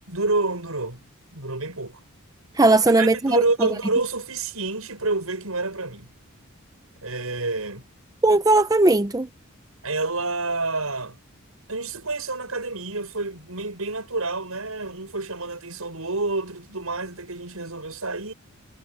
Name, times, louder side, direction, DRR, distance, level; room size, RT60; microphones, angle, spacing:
voice 1, 0.1-1.0 1.3-2.0 3.0-6.1 7.0-7.9 9.8-11.2 11.7-18.3, right 3 dB, 85° right, 6.6 m, -28 dB
voice 2, 2.6-3.7 8.2-9.3, right 2 dB, 15° right, 0.5 m, -18 dB
head